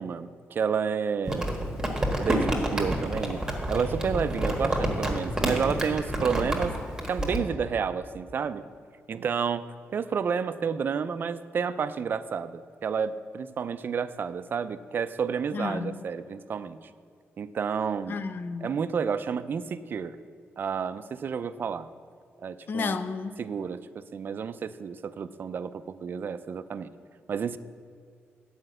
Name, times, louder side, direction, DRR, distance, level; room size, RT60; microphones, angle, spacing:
voice 1, 0.0-1.5 2.2-6.8 7.1-8.6 9.1-16.8 17.4-18.2 18.6-20.2 20.6-21.9 22.4-23.0 23.4-26.9 27.3-27.6, right 6 dB, 45° right, 0.4 m, -30 dB
Crumpling crinkling, 1.3-7.4, right 1 dB, 10° right, 1.4 m, -28 dB
voice 2, 15.5-16.0 18.1-18.7 22.7-23.3, left 4 dB, 45° left, 0.5 m, -31 dB
9.8 x 5.1 x 7.7 m
wide cardioid pair, 140°, 5 cm